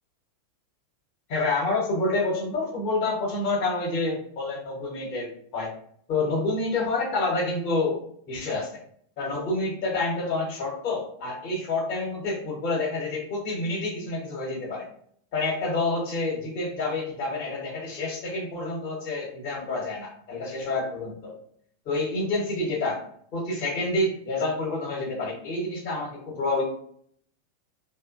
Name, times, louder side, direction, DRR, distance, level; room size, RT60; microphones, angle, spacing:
voice 1, 1.3-5.7 6.1-8.0 8.3-8.7 9.2-14.9 15.3-21.3 21.8-23.0 23.3-26.6, left 2 dB, 45° left, -2 dB, 1.0 m, -28 dB
2.9 x 2.1 x 2.5 m, 0.63 s
figure-of-eight pair, 90°, 0 cm